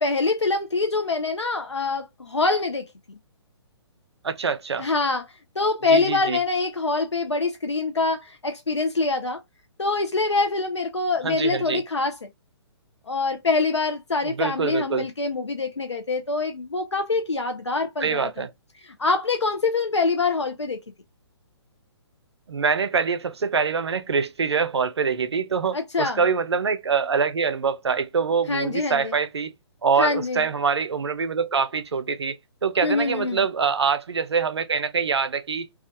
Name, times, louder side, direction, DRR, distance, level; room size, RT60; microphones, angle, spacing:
voice 1, 0.0-3.2 4.8-5.2 5.6-9.4 9.8-12.3 13.1-18.3 18.8-20.8 25.7-26.2 28.5-29.2 30.0-30.5 32.8-33.5, left 3 dB, 85° left, 0.4 m, -25 dB
voice 2, 4.2-4.9 5.9-6.4 11.2-11.8 14.2-15.1 18.0-18.5 22.5-29.5 29.8-32.4 32.6-35.7, right 5 dB, 70° right, 0.4 m, -24 dB
2.3 x 2.1 x 2.5 m
figure-of-eight pair, 130°, 15 cm